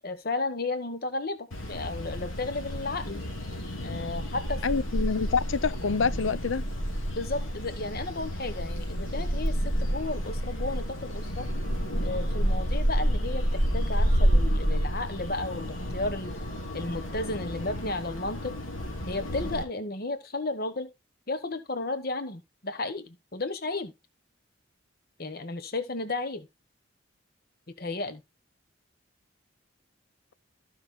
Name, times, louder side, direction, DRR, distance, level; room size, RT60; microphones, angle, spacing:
voice 1, 0.0-3.2 3.8-4.6 7.1-11.5 12.0-16.3 16.7-18.5 19.1-20.9 21.3-23.9 25.2-26.5 27.8-28.2, left 2 dB, 50° left, 1.2 m, -33 dB
sound 1, 1.5-19.6, equal, 90° left, 3.0 m, -29 dB
voice 2, 4.6-6.6, left 5 dB, 75° left, 0.6 m, -27 dB
15.0 x 5.9 x 2.3 m
head